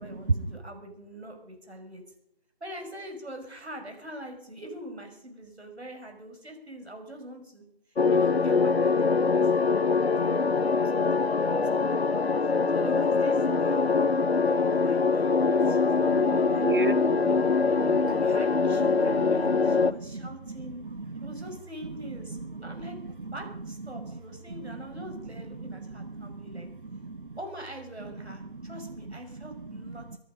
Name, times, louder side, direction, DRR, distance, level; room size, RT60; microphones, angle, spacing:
voice 1, 0.0-2.0 2.6-7.6 8.1-9.3 9.9-11.7 12.0-12.3 12.7-14.0 14.4-17.3 18.1-20.8 21.2-26.7 27.4-30.2, right 1 dB, 75° right, 4 dB, 5.8 m, -44 dB
sound 1, 8.0-19.9, left 4 dB, 70° left, 0.8 m, -23 dB
voice 2, 16.1-17.4 17.6-18.1 18.8-21.3 21.9-22.0 22.3-23.3 23.9-24.1 24.5-24.9 25.6-27.4 28.5-28.8 29.3-30.2, right 3 dB, 50° right, 17 dB, 0.9 m, -38 dB
23.5 x 9.3 x 5.2 m, 0.76 s
figure-of-eight pair, 170°, 33 cm